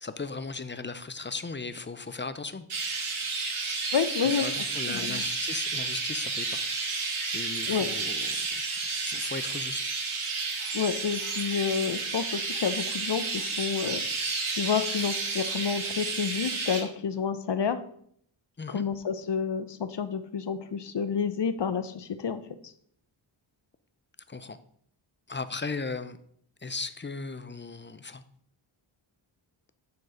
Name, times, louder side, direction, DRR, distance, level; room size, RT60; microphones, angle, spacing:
voice 1, 0.0-2.7 4.2-6.6 7.2-10.0 18.6-18.8 24.3-24.6 25.3-26.2 26.6-28.2, left 4 dB, 25° left, 12 dB, 0.4 m, -37 dB
Chirp tweet, 2.7-16.8, right 4 dB, 85° right, 1.6 m, -31 dB
voice 2, 3.9-4.4 4.9-5.2 7.7-7.9 10.7-14.0 14.5-17.8 18.7-22.7, left 6 dB, 60° left, 12 dB, 0.7 m, -29 dB
9.5 x 4.5 x 5.0 m, 0.65 s
wide cardioid pair, 115°, 48 cm